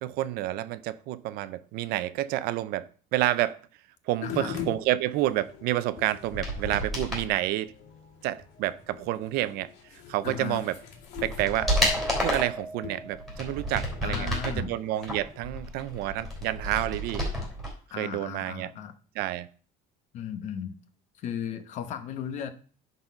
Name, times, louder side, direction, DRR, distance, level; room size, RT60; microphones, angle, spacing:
voice 1, 0.0-3.6 4.1-7.7 8.2-9.7 10.1-10.8 11.2-11.7 12.2-14.3 14.6-17.2 18.0-18.7 19.2-19.5, right 14 dB, 60° right, 0.6 m, -29 dB
sound 1, 4.2-15.5, left 8 dB, 70° left, 2.2 m, -44 dB
sound 2, 6.3-7.3 10.3-10.4 10.9-12.6 13.1-14.6 15.0-17.7 18.0-18.1, equal, ahead, 3.5 m, -30 dB
voice 2, 10.2-10.6 14.0-14.7 17.9-18.9 20.1-20.8 21.2-22.5, left 8 dB, 40° left, 1.0 m, -36 dB
Mallet percussion, 11.6-13.9, right 2 dB, 20° left, 1.1 m, -38 dB
10.5 x 4.1 x 5.5 m
cardioid pair, 175°, 18 cm